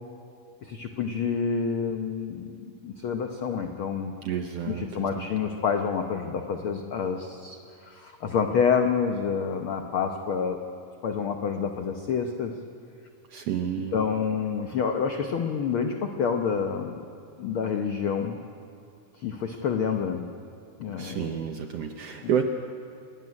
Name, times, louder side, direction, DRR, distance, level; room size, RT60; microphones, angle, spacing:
voice 1, 0.6-4.1 4.7-7.6 7.8-10.6 11.0-12.5 13.9-17.0 17.4-18.4 19.2-20.2 20.8-21.3, left 6 dB, 85° left, 5 dB, 1.1 m, -28 dB
voice 2, 4.2-5.3 13.3-14.0 21.0-22.4, right 8 dB, 75° right, 5 dB, 1.5 m, -30 dB
28.0 x 12.5 x 9.7 m, 2.5 s
omnidirectional pair, 3.8 m